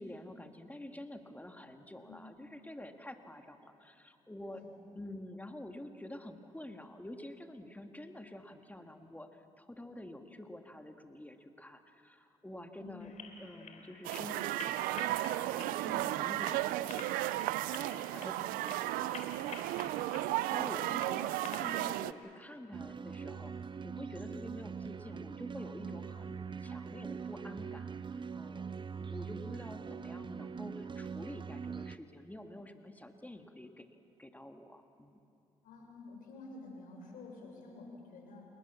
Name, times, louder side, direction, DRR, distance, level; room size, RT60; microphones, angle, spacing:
voice 1, 0.0-4.6 5.0-19.4 19.8-33.9 34.2-35.2, left 1 dB, 10° left, 5 dB, 2.2 m, -48 dB
sound 1, 13.0-22.1, left 5 dB, 55° left, 3.5 m, -51 dB
sound 2, 14.0-22.1, right 16 dB, 80° right, 0.5 m, -34 dB
voice 2, 18.1-18.6 35.6-38.5, left 3 dB, 75° left, 1 dB, 6.7 m, -50 dB
sound 3, 22.7-32.0, right 6 dB, 35° right, 0.7 m, -42 dB
28.5 x 21.0 x 7.2 m, 2.6 s
supercardioid pair, 55°, 14 cm